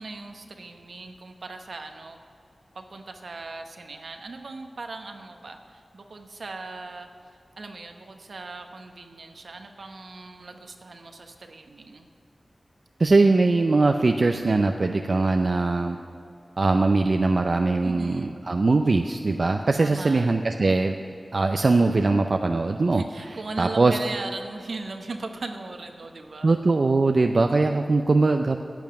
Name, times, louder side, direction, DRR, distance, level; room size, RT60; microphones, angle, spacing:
voice 1, 0.0-2.2 2.7-7.1 7.6-12.1 17.8-18.5 19.8-20.3 22.9-26.5, right 3 dB, 85° right, 5 dB, 1.0 m, -38 dB
voice 2, 13.0-16.0 16.6-21.0 21.3-23.0 23.6-24.0 26.4-28.6, right 3 dB, 65° right, 5 dB, 0.5 m, -21 dB
10.5 x 7.2 x 9.5 m, 2.6 s
cardioid pair, 40°, 0 cm